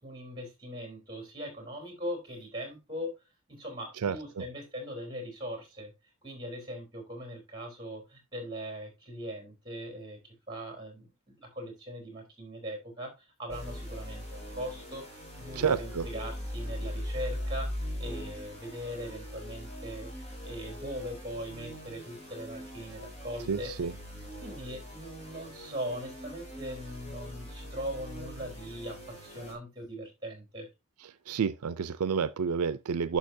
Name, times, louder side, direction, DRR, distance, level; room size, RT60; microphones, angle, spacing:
voice 1, 0.0-3.1 3.5-5.9 6.2-13.1 13.4-15.0 15.4-17.7 18.0-20.1 20.4-23.7 24.4-30.7, equal, 20° right, 3.5 m, -40 dB
sound 1, 13.5-29.5, equal, 30° left, 3.4 m, -41 dB
voice 2, 15.6-16.1 23.5-23.9 31.3-33.2, right 6 dB, 90° right, 0.5 m, -29 dB
11.0 x 5.8 x 2.7 m
head